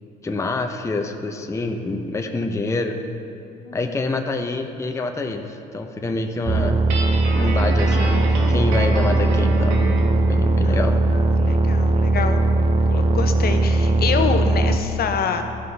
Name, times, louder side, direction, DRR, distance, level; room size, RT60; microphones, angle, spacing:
voice 1, 0.2-3.0 3.7-6.8 7.4-9.8 10.3-10.9, left 3 dB, 15° left, 5 dB, 0.6 m, -26 dB
sound 1, 6.5-14.8, right 2 dB, 30° right, 0.5 m, -19 dB
Guitar, 6.9-10.1, right 3 dB, 80° right, 1.1 m, -29 dB
voice 2, 11.3-12.4 12.9-15.4, left 6 dB, 50° left, 6 dB, 0.7 m, -26 dB
12.5 x 5.4 x 3.4 m, 2.8 s
supercardioid pair, 75°, 20 cm